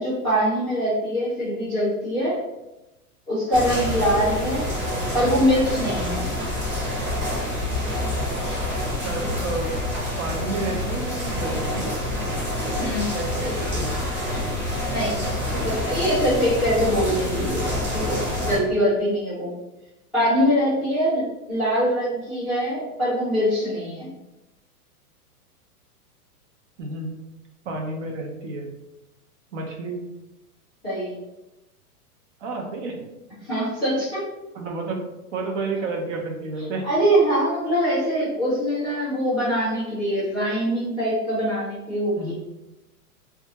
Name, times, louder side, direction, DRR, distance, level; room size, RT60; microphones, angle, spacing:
voice 1, 0.0-2.4 3.3-4.7 5.1-6.3 12.8-13.0 13.4-13.5 14.9-15.2 15.6-19.5 20.1-24.1 30.8-31.1 33.4-34.2 36.8-42.3, equal, ahead, -17 dB, 0.3 m, -23 dB
sound 1, 3.5-18.6, left 1 dB, 20° right, 0.9 m, -27 dB
voice 2, 9.0-9.8 10.2-12.0 13.0-13.9 26.8-27.2 27.7-28.7 29.5-30.0 32.4-33.0 34.5-35.0 35.3-36.9 42.2-42.3, right 3 dB, 55° right, 2 dB, 0.7 m, -30 dB
2.5 x 2.2 x 2.9 m, 0.97 s
hypercardioid pair, 140°, 45 cm